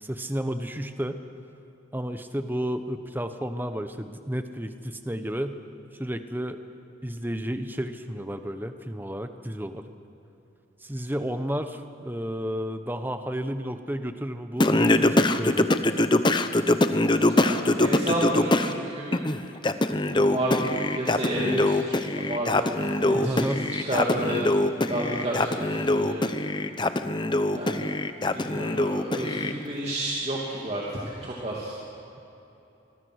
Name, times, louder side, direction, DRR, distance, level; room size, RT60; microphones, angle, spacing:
voice 1, 0.0-1.2 1.9-5.6 5.9-6.6 7.0-9.9 10.8-15.7 23.1-23.7, equal, 10° right, 8 dB, 0.9 m, -32 dB
Singing, 14.6-18.7 19.1-29.5, left 2 dB, 25° left, 0.7 m, -23 dB
voice 2, 17.2-19.2 20.1-24.5 24.9-26.3 27.5-27.8 28.3-31.8, right 1 dB, 30° right, -4 dB, 2.7 m, -31 dB
26.0 x 22.0 x 6.4 m, 3.0 s
head